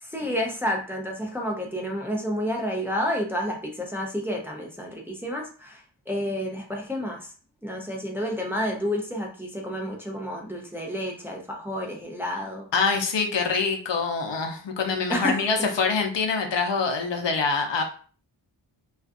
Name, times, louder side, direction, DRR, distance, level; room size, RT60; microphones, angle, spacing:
voice 1, 0.0-7.3 7.6-12.7 15.1-15.5, equal, 5° right, 0 dB, 0.5 m, -30 dB
voice 2, 12.7-17.8, left 4 dB, 65° left, 3 dB, 0.6 m, -25 dB
2.4 x 2.3 x 2.4 m, 0.41 s
wide cardioid pair, 60°, 47 cm